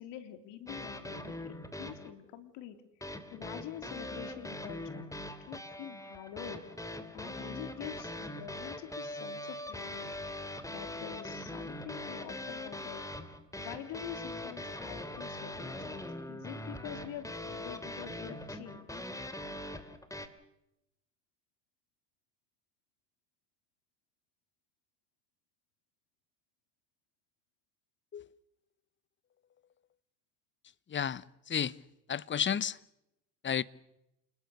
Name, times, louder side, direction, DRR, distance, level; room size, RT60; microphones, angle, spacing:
voice 1, 0.0-2.8 3.3-5.2 5.5-6.6 7.1-10.1 10.7-13.0 13.6-19.0, left 11 dB, 55° left, 3.6 m, -46 dB
sound 1, 0.7-2.1 3.0-20.3, left 1 dB, 5° left, 3.0 m, -42 dB
voice 2, 30.9-31.7 32.1-32.8 33.4-33.6, left 8 dB, 25° left, 0.9 m, -32 dB
28.5 x 20.5 x 6.8 m
hypercardioid pair, 75°, 50 cm